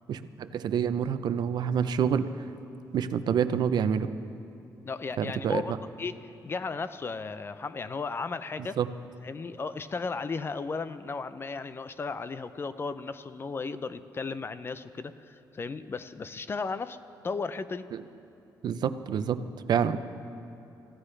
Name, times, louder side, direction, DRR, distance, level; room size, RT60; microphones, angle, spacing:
voice 1, 0.1-2.3 2.9-4.1 5.2-5.6 8.8-8.9 17.9-18.0 18.6-19.4 19.7-20.0, right 8 dB, 65° right, 11 dB, 0.6 m, -27 dB
voice 2, 4.8-6.2 6.4-8.8 9.2-17.0 17.2-17.9, left 4 dB, 30° left, 13 dB, 0.5 m, -35 dB
26.0 x 15.0 x 3.3 m, 2.7 s
cardioid pair, 115°, 8 cm